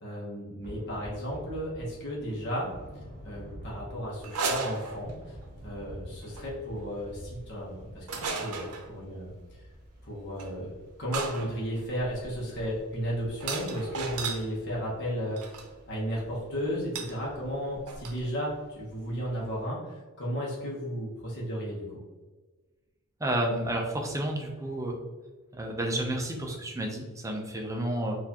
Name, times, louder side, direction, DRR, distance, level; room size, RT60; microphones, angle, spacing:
voice 1, 0.0-2.7 3.2-5.4 5.6-9.6 10.0-10.7 11.0-22.0, equal, 50° left, -5 dB, 0.9 m, -34 dB
Thunder / Rain, 0.6-19.7, equal, 40° right, 1.0 m, -50 dB
sound 1, 4.2-5.4 6.2-6.5 8.1-8.9 10.4-10.5 11.1-14.5 15.4-15.7 16.9-17.2 17.4-17.5 17.7-18.2, right 4 dB, 85° right, 0.6 m, -35 dB
voice 2, 23.2-25.0 25.5-28.2, right 1 dB, 15° right, 1 dB, 0.5 m, -31 dB
4.1 x 2.5 x 2.8 m, 1.3 s
head